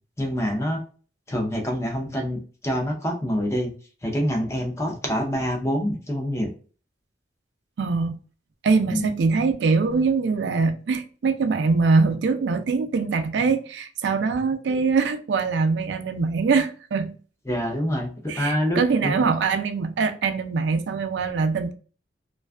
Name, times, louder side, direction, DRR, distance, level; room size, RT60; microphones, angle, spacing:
voice 1, 0.2-0.8 1.3-3.7 4.0-6.5 8.9-9.1 14.7-14.8 17.5-18.1 18.3-19.1, equal, 15° left, 0.5 m, -26 dB
voice 2, 7.8-8.2 8.6-17.2 18.3-21.7, right 4 dB, 75° right, 0.3 m, -23 dB
2.5 x 2.3 x 2.3 m
head